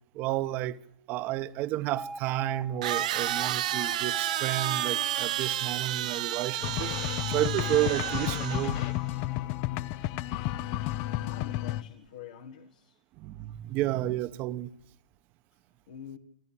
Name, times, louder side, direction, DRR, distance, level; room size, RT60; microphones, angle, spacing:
voice 1, 0.1-0.8 1.1-8.8 13.2-14.7, right 14 dB, 45° right, 1.0 m, -31 dB
sound 1, 1.2-1.3 2.8-8.9, right 12 dB, 75° right, 0.7 m, -31 dB
Alarm, 2.0-10.0, right 2 dB, 5° right, 0.7 m, -44 dB
sound 2, 6.6-11.8, left 15 dB, 50° left, 0.7 m, -32 dB
voice 2, 11.2-13.0 15.9-16.2, left 9 dB, 80° left, 1.6 m, -46 dB
26.0 x 14.0 x 8.6 m
hypercardioid pair, 105°, 4 cm